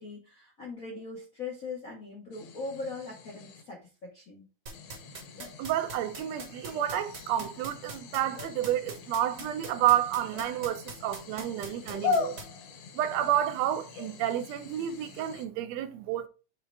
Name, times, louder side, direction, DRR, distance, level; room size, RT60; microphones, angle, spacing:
voice 1, 0.0-4.4, left 3 dB, 80° left, 0.7 m, -40 dB
sound 1, 2.3-3.6 4.7-15.4, left 5 dB, 65° left, 1.8 m, -39 dB
sound 2, 4.7-12.4, right 3 dB, 50° right, 1.0 m, -41 dB
voice 2, 5.6-12.4 12.9-16.3, right 11 dB, 75° right, 1.7 m, -30 dB
6.7 x 3.2 x 4.5 m
omnidirectional pair, 3.4 m